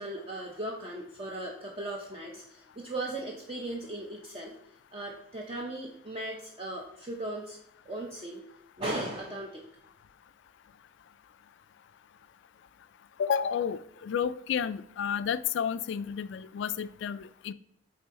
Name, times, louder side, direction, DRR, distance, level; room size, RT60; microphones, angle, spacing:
voice 1, 0.0-4.6 4.9-7.6 7.9-8.4 8.8-9.6, right 1 dB, 30° right, 0.6 m, -37 dB
voice 2, 13.2-17.5, left 7 dB, 65° left, 0.3 m, -31 dB
8.8 x 3.7 x 3.7 m
head